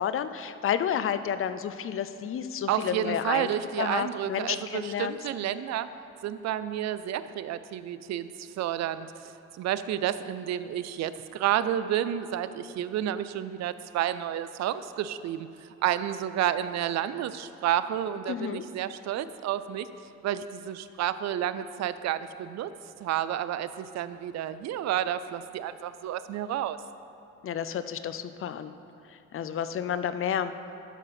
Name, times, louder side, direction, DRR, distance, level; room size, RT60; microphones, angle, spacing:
voice 1, 0.0-3.5 3.8-5.2 18.3-18.6 27.4-28.7 29.1-30.5, left 9 dB, 45° left, 12 dB, 0.5 m, -30 dB
voice 2, 2.7-5.9 6.2-9.1 9.5-19.9 20.2-22.7 23.0-26.8, right 11 dB, 60° right, 14 dB, 0.4 m, -30 dB
12.0 x 4.2 x 5.7 m, 2.7 s
cardioid pair, 90°, 30 cm